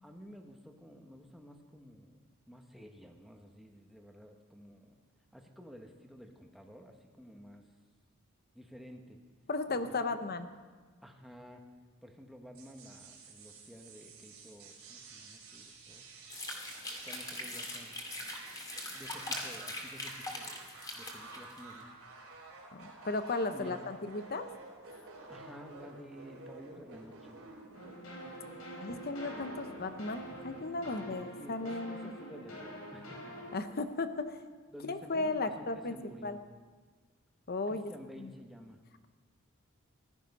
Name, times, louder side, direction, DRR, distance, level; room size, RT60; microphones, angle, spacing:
voice 1, 0.0-2.2 2.5-5.0 5.3-7.7 8.5-9.2 9.7-10.2 11.0-11.6 12.0-16.1 17.0-17.9 18.9-21.9 23.5-23.8 25.3-27.3 30.8-33.2 34.7-36.4 37.7-38.8, equal, ahead, 2 dB, 1.2 m, -52 dB
voice 2, 9.5-10.5 22.7-24.4 28.8-32.2 33.5-34.4 34.8-35.9 36.2-36.4 37.5-37.9 38.2-38.3, left 3 dB, 45° left, 9 dB, 0.8 m, -35 dB
sound 1, 12.5-31.0, right 3 dB, 80° right, 3.8 m, -51 dB
sound 2, 16.3-21.7, left 1 dB, 20° left, 2.1 m, -41 dB
sound 3, 27.7-33.6, equal, 85° left, 4.4 m, -46 dB
15.5 x 12.0 x 5.4 m, 1.4 s
head